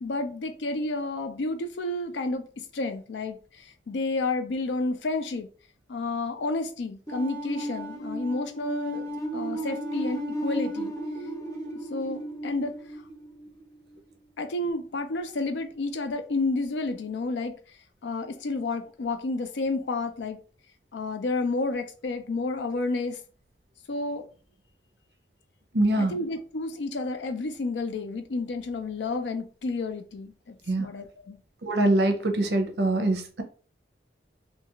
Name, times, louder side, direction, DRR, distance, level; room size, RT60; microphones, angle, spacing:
voice 1, 0.0-5.5 5.9-10.9 11.9-12.7 14.4-17.5 18.0-20.4 20.9-23.2 23.9-24.2 26.0-31.4, left 3 dB, 80° left, 0.5 m, -30 dB
sound 1, 7.1-13.9, right 1 dB, 20° left, 0.6 m, -34 dB
voice 2, 25.7-26.1 30.7-30.9 31.6-33.4, right 1 dB, 65° right, 0.6 m, -23 dB
2.6 x 2.4 x 2.9 m
head